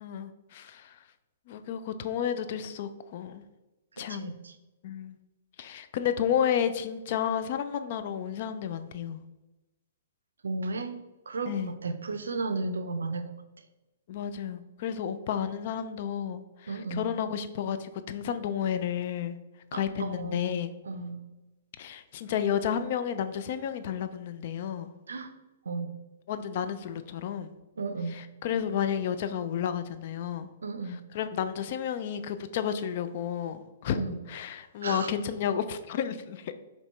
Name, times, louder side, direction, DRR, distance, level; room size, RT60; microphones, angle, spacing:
voice 1, 0.0-0.9 1.5-3.4 4.0-4.3 4.8-5.2 5.6-9.2 11.5-11.7 14.1-19.4 19.7-20.7 21.8-24.9 26.3-27.5 28.1-30.5 31.1-36.5, left 8 dB, 50° left, 11 dB, 0.3 m, -31 dB
voice 2, 4.0-4.6 10.4-10.9 11.3-13.3 16.7-17.1 19.7-20.5 20.9-21.2 25.1-25.3 25.7-25.9 27.8-28.2 30.6-31.0 33.9-34.2 34.8-35.1, right 3 dB, 75° right, 9 dB, 0.4 m, -34 dB
4.3 x 2.9 x 3.2 m, 1.1 s
figure-of-eight pair, 120°, 0 cm